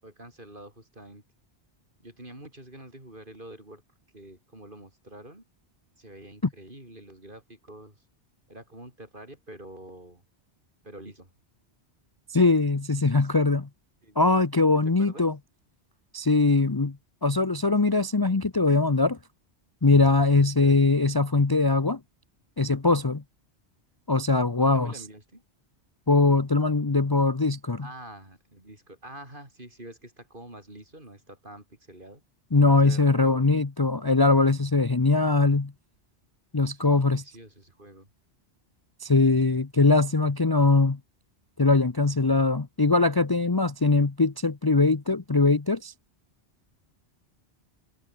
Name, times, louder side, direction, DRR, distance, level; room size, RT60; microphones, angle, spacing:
voice 1, 0.0-1.2 2.0-3.8 4.1-5.4 6.0-8.0 8.5-10.2 10.8-11.3 13.1-13.3 14.0-14.2 14.8-15.3 20.6-20.8 24.6-25.4 27.8-32.2 32.8-33.9 36.7-38.1, right 1 dB, 50° right, 6.4 m, -46 dB
voice 2, 12.3-13.7 14.2-15.3 16.1-17.0 17.2-19.2 19.8-22.0 22.6-23.2 24.1-24.9 26.1-27.9 32.5-35.7 36.5-37.2 39.0-41.0 41.6-45.9, left 3 dB, 20° left, 0.8 m, -21 dB
omnidirectional pair, 1.2 m